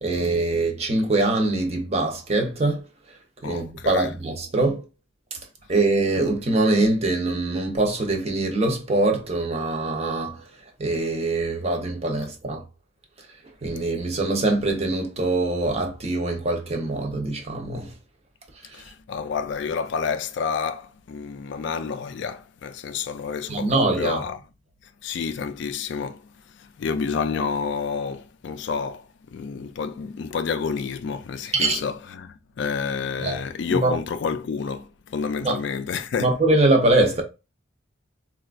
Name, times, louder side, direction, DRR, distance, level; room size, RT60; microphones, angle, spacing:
voice 1, 0.0-2.8 3.4-4.8 5.7-10.4 10.8-12.6 13.6-17.9 23.5-24.2 31.5-31.8 33.2-33.4 33.7-34.0 35.4-35.6 36.2-37.2, right 2 dB, 30° right, 0.7 m, -23 dB
voice 2, 3.4-4.1 18.7-24.4 25.0-36.3, left 5 dB, 60° left, 0.3 m, -29 dB
4.2 x 2.3 x 2.4 m
head